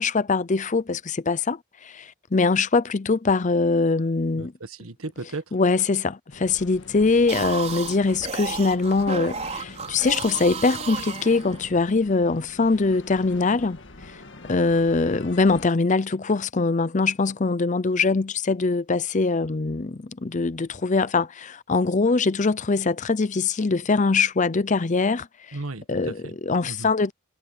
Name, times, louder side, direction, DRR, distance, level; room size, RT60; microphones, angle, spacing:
voice 1, 0.0-4.5 5.5-13.8 14.5-25.6 25.9-27.1, left 3 dB, 35° left, 0.6 m, -23 dB
voice 2, 4.4-5.4 25.5-26.3 26.6-26.9, right 3 dB, 80° right, 1.5 m, -35 dB
sound 1, 6.3-15.7, left 2 dB, 60° left, 1.8 m, -45 dB
sound 2, 7.1-11.9, right 5 dB, 30° right, 5.0 m, -33 dB
head